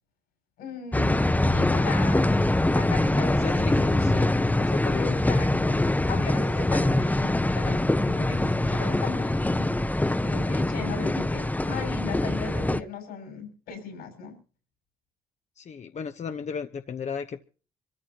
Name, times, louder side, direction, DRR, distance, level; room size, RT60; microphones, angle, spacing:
voice 1, 0.6-4.0 5.0-9.7 10.2-14.3, left 6 dB, 85° left, 5 dB, 6.6 m, -38 dB
sound 1, 0.9-12.8, left 1 dB, 10° left, 0.8 m, -24 dB
voice 2, 3.1-5.2 15.6-17.4, left 6 dB, 50° left, 8 dB, 0.9 m, -35 dB
25.5 x 14.0 x 2.9 m, 0.39 s
supercardioid pair, 60°, 15 cm